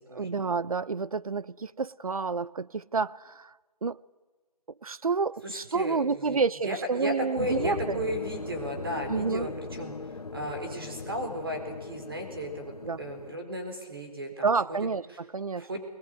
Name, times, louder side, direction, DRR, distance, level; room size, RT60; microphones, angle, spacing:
voice 1, 0.1-3.5 3.8-4.0 4.8-8.0 9.1-9.5 12.8-13.0 14.4-15.7, right 4 dB, 60° right, 0.7 m, -29 dB
voice 2, 5.4-6.4 6.6-9.9 10.3-12.7 13.0-14.9 15.6-15.8, equal, 35° right, 4.3 m, -35 dB
sound 1, 7.4-13.4, left 3 dB, 65° left, 1.2 m, -39 dB
22.0 x 21.0 x 9.2 m
figure-of-eight pair, 175°, 20 cm